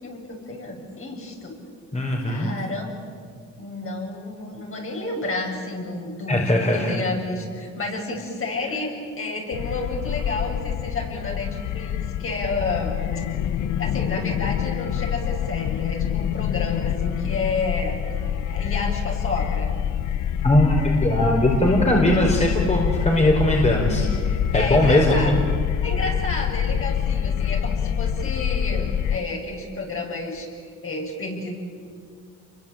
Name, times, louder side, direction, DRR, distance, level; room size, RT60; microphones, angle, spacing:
voice 1, 0.0-1.5 2.3-2.9 3.6-13.0 13.8-18.0 18.5-19.7 24.5-25.3 25.8-31.6, left 3 dB, 45° left, 0 dB, 7.8 m, -30 dB
voice 2, 1.9-2.5 6.3-7.0 20.4-25.4, left 1 dB, 20° left, 0 dB, 5.1 m, -20 dB
sound 1, 9.5-29.2, left 9 dB, 70° left, 0.9 m, -26 dB
28.5 x 23.5 x 9.0 m, 2.1 s
cardioid pair, 90°, 30 cm